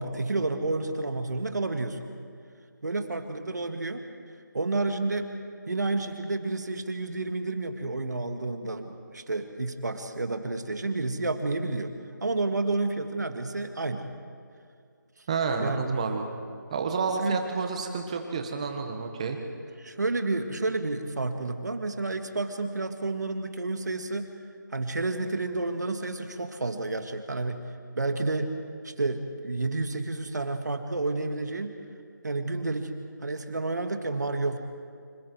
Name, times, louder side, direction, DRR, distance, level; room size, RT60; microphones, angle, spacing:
voice 1, 0.0-2.0 2.8-4.1 4.5-5.3 5.7-11.9 12.2-14.1 15.6-15.8 17.2-17.4 19.8-24.3 24.7-27.6 28.0-28.5 28.8-31.7 32.2-32.9 33.2-34.6, right 2 dB, 60° right, 6 dB, 1.9 m, -30 dB
voice 2, 15.3-16.3 16.7-19.4, right 4 dB, 20° right, 4 dB, 1.6 m, -29 dB
27.5 x 26.5 x 4.7 m, 2.3 s
figure-of-eight pair, 170°, 11 cm